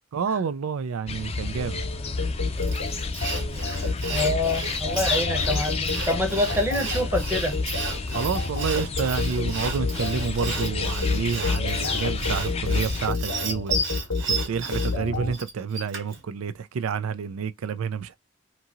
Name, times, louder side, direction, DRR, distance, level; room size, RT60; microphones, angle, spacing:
voice 1, 0.1-1.8 8.1-13.8 14.5-18.2, right 6 dB, 85° right, 0.4 m, -29 dB
sound 1, 1.1-13.1, left 4 dB, 30° left, 0.4 m, -30 dB
sound 2, 2.2-15.3, left 4 dB, 80° left, 0.8 m, -29 dB
Sawing, 2.6-16.2, right 3 dB, 60° right, 1.5 m, -33 dB
voice 2, 3.6-7.5, left 1 dB, 10° right, 0.8 m, -27 dB
2.9 x 2.8 x 2.3 m
head